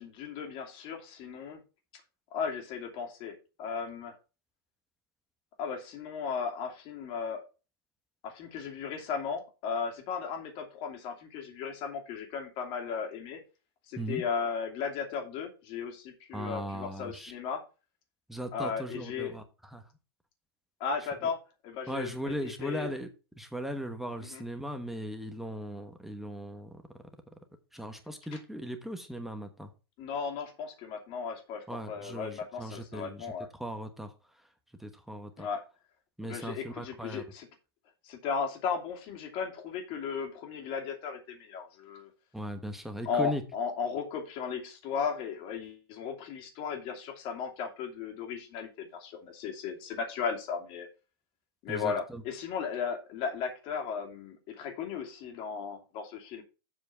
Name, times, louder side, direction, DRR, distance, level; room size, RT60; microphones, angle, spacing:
voice 1, 0.0-1.6 2.3-4.2 5.6-7.4 8.2-13.4 13.9-17.6 18.5-19.3 20.8-21.4 21.6-22.9 24.2-24.4 28.3-28.4 30.0-33.5 35.4-35.6 36.2-37.5 38.0-42.1 43.0-50.9 51.6-56.4, left 6 dB, 45° left, 4 dB, 2.6 m, -36 dB
voice 2, 16.3-17.3 18.3-19.8 21.9-23.1 23.4-26.8 27.7-29.7 31.7-33.3 33.5-34.1 34.8-35.5 36.2-37.2 42.3-43.4 51.7-52.2, equal, ahead, 6 dB, 1.1 m, -38 dB
7.6 x 4.5 x 6.8 m, 0.31 s
hypercardioid pair, 120°, 13 cm